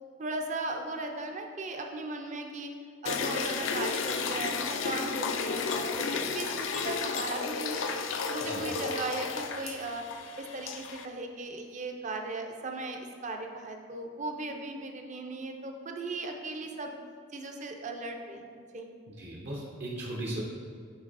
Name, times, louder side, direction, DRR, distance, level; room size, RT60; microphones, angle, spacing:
voice 1, 0.2-2.7 3.0-7.9 8.2-10.0 10.4-16.9 17.3-18.9, right 2 dB, 40° right, 3 dB, 0.6 m, -37 dB
sound 1, 3.1-11.1, left 5 dB, 80° left, 0.5 m, -33 dB
voice 2, 19.2-20.4, right 1 dB, 60° right, -5 dB, 1.0 m, -37 dB
8.7 x 3.2 x 4.1 m, 2.2 s
head